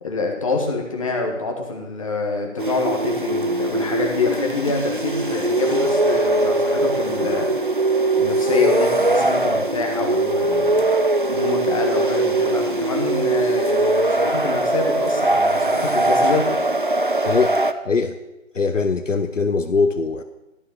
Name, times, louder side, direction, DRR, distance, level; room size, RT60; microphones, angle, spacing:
voice 1, 0.0-7.5 8.2-10.9 11.3-16.5, left 4 dB, 25° left, 1 dB, 1.6 m, -26 dB
sound 1, 2.6-17.7, right 2 dB, 40° right, 0.5 m, -21 dB
voice 2, 17.2-17.6 17.8-18.2 18.5-20.2, left 4 dB, 65° left, 9 dB, 0.8 m, -21 dB
12.5 x 6.6 x 6.7 m, 0.98 s
figure-of-eight pair, 155°, 41 cm